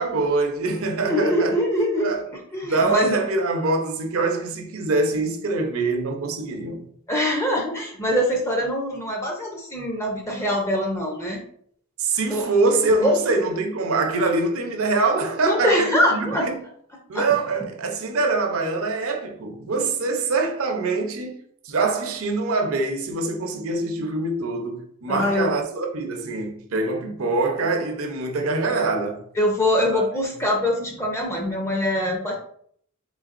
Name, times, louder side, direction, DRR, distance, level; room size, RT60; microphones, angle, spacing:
voice 1, 0.0-1.6 2.0-2.2 2.6-6.8 12.0-16.6 17.1-21.4 21.6-29.2 29.9-30.1, right 3 dB, 70° right, 0.7 m, -24 dB
voice 2, 1.0-2.1 2.5-3.2 7.1-11.4 12.3-12.5 13.0-13.2 15.4-16.4 17.1-17.3 25.1-25.5 29.4-32.3, left 1 dB, 15° left, 0.6 m, -23 dB
3.9 x 3.4 x 2.5 m
head